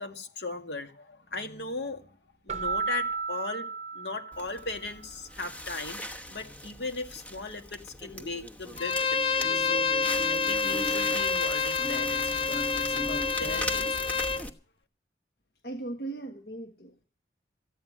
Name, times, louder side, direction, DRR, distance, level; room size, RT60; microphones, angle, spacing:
voice 1, 0.0-2.1 2.4-3.7 3.9-9.9 10.3-14.4, left 3 dB, 75° left, 6 dB, 2.2 m, -38 dB
Keyboard (musical), 2.5-4.9, right 5 dB, 40° right, 0.8 m, -33 dB
Crackle, 4.3-14.5, left 1 dB, 10° left, 1.1 m, -38 dB
Bowed string instrument, 8.8-14.4, left 4 dB, 30° left, 0.6 m, -28 dB
voice 2, 15.6-17.0, right 2 dB, 60° left, 6 dB, 1.4 m, -38 dB
14.0 x 9.4 x 7.5 m, 0.39 s
head